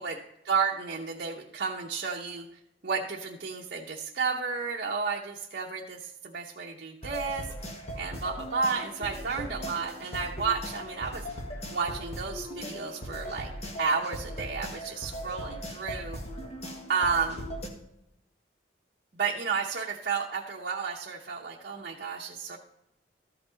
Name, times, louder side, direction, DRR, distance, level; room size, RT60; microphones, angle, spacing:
voice 1, 0.5-2.5 2.8-7.5 8.0-11.3 11.7-13.5 13.8-16.2 16.9-17.5 19.1-22.6, right 5 dB, 55° right, -2 dB, 0.8 m, -32 dB
sound 1, 7.0-17.7, equal, 35° left, 1.5 m, -39 dB
13.5 x 5.9 x 3.9 m, 0.85 s
head